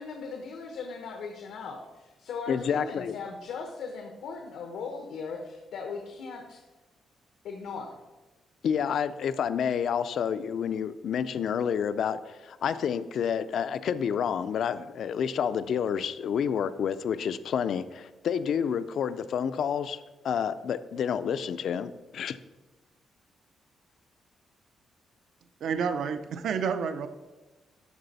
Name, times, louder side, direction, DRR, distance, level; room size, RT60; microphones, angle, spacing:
voice 1, 0.0-6.6 7.4-7.9, left 5 dB, 90° left, 3 dB, 0.8 m, -38 dB
voice 2, 2.5-3.2 8.6-22.4, left 7 dB, 60° left, 14 dB, 0.3 m, -29 dB
voice 3, 25.6-27.1, right 6 dB, 65° right, 10 dB, 0.5 m, -29 dB
12.0 x 4.1 x 4.0 m, 1.2 s
cardioid pair, 160°, 0 cm